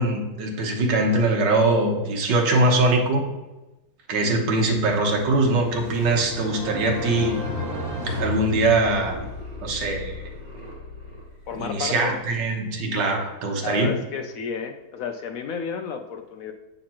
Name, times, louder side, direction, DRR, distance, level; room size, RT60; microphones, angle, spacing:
voice 1, 0.0-3.2 4.1-7.4 8.2-9.3 9.6-10.1 11.6-14.0, right 2 dB, 80° right, 1 dB, 1.8 m, -22 dB
sound 1, 4.6-12.6, left 1 dB, 25° right, 1.4 m, -40 dB
sound 2, 5.2-9.4, left 1 dB, 45° right, 0.9 m, -33 dB
voice 2, 11.5-12.1 13.6-16.5, left 6 dB, 70° left, 6 dB, 0.8 m, -31 dB
7.6 x 6.6 x 2.9 m, 1.0 s
omnidirectional pair, 1.9 m